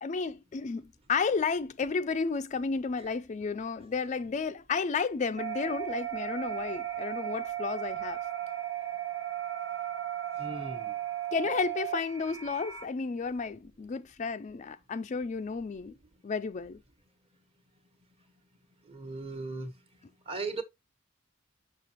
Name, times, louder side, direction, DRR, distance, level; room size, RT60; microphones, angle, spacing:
voice 1, 0.0-8.2 11.3-15.9 16.2-16.8, left 5 dB, 35° left, 0.4 m, -32 dB
sound 1, 5.4-12.9, right 12 dB, 80° right, 1.2 m, -36 dB
voice 2, 10.4-11.0 18.9-19.7 20.3-20.6, right 3 dB, 30° right, 1.3 m, -37 dB
6.7 x 6.3 x 3.0 m
head